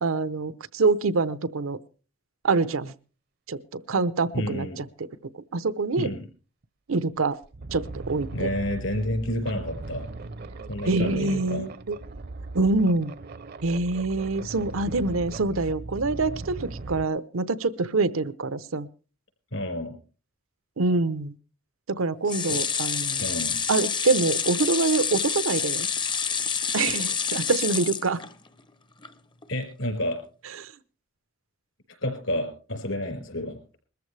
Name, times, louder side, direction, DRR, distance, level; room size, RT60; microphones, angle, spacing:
voice 1, 0.0-1.8 2.4-2.9 3.5-5.1 5.3-6.1 6.9-7.4 7.7-8.5 10.9-12.0 12.5-13.1 13.6-18.9 20.8-21.4 21.9-23.2 23.7-25.9 26.7-28.2 30.6-30.7, right 3 dB, 85° right, 15 dB, 0.8 m, -25 dB
voice 2, 4.3-4.8 5.9-6.2 8.3-10.0 10.7-11.6 19.5-19.9 22.5-22.6 23.2-23.6 29.5-30.2 32.0-33.6, left 1 dB, 75° left, 5 dB, 4.7 m, -30 dB
sound 1, 6.6-6.7 7.2-17.0, right 2 dB, 50° right, 0.6 m, -39 dB
sound 2, 22.3-28.6 29.0-29.1 29.4-29.5, left 6 dB, 25° left, 0.6 m, -28 dB
21.5 x 14.0 x 3.3 m, 0.36 s
head